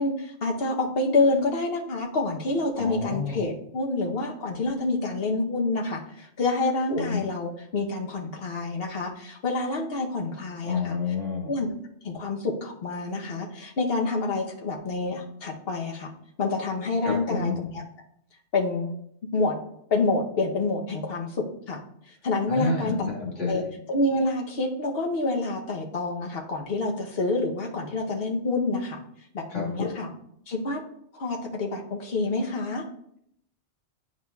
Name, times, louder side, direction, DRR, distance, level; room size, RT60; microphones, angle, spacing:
voice 1, 0.0-11.0 11.5-11.7 12.0-16.1 16.4-17.8 18.5-18.9 19.3-19.6 19.9-21.3 21.7-21.8 22.1-23.1 23.4-23.6 23.9-29.0 29.3-30.1 30.5-30.8 31.1-32.8, left 3 dB, 55° left, 1 dB, 1.1 m, -27 dB
voice 2, 2.8-3.4 6.9-7.2 10.6-11.5 17.0-17.6 22.5-23.6 29.5-29.6, left 4 dB, 90° left, -3 dB, 2.2 m, -29 dB
10.5 x 4.8 x 2.3 m, 0.72 s
omnidirectional pair, 1.2 m